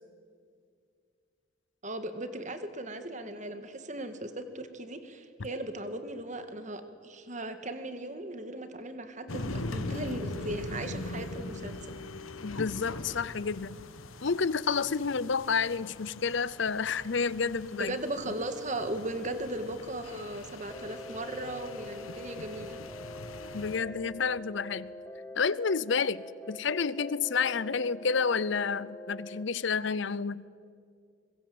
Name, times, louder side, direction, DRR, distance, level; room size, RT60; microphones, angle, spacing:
voice 1, 1.8-11.9 17.8-22.8, right 1 dB, 35° right, 9 dB, 1.8 m, -37 dB
sound 1, 9.3-23.8, left 2 dB, 85° left, 1.4 m, -41 dB
voice 2, 12.4-13.8 14.2-18.0 23.5-24.9 25.4-30.4, left 5 dB, 60° left, 19 dB, 0.7 m, -30 dB
sound 2, 20.7-29.4, left 1 dB, 10° left, 1.1 m, -45 dB
25.0 x 22.5 x 7.9 m, 2.3 s
head